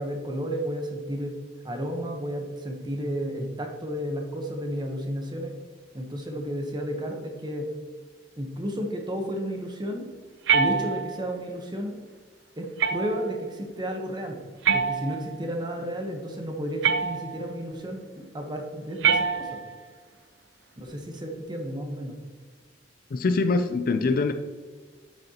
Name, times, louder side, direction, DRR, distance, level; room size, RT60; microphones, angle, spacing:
voice 1, 0.0-1.3 1.6-5.5 5.9-7.7 8.4-10.1 10.5-12.0 12.6-14.4 14.7-19.6 20.8-22.2, equal, 25° right, 2 dB, 0.9 m, -32 dB
sound 1, 10.5-11.3 12.8-13.4 14.6-15.5 16.8-17.5 19.0-19.9, right 6 dB, 85° right, 0.5 m, -25 dB
voice 2, 23.1-24.3, left 3 dB, 50° left, 7 dB, 0.4 m, -23 dB
8.3 x 6.7 x 2.9 m, 1.5 s
head